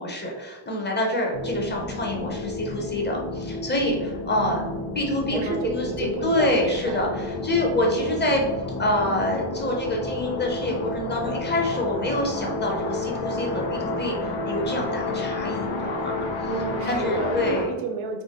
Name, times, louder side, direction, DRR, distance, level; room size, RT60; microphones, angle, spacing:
voice 1, 0.0-4.6 5.0-8.5 8.8-16.1 16.9-17.8, left 1 dB, 25° left, 0 dB, 0.5 m, -26 dB
sound 1, 1.3-17.6, left 2 dB, 65° left, 0.7 m, -31 dB
voice 2, 4.4-4.9 5.2-7.0 16.5-18.2, right 4 dB, 85° right, 5 dB, 0.7 m, -31 dB
3.7 x 2.8 x 2.8 m, 1.1 s
wide cardioid pair, 170°, 49 cm